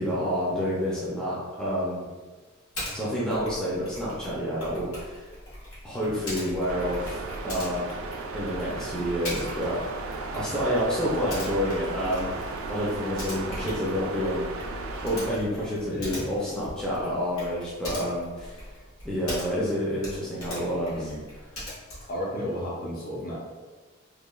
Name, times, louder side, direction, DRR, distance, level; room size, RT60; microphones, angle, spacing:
voice 1, 0.0-2.0 2.9-5.3 5.8-7.9 8.3-9.8 10.3-14.5 15.0-18.6 19.0-21.1, equal, 5° left, -8 dB, 0.4 m, -29 dB
Typing, 2.7-3.0 3.3-19.7 20.0-22.2, left 1 dB, 90° left, 1.1 m, -41 dB
sound 1, 6.7-15.4, right 3 dB, 75° right, 0.3 m, -35 dB
voice 2, 15.9-16.3 20.9-21.2 22.1-23.4, equal, 45° left, -4 dB, 0.6 m, -33 dB
3.1 x 2.2 x 2.3 m, 1.3 s
head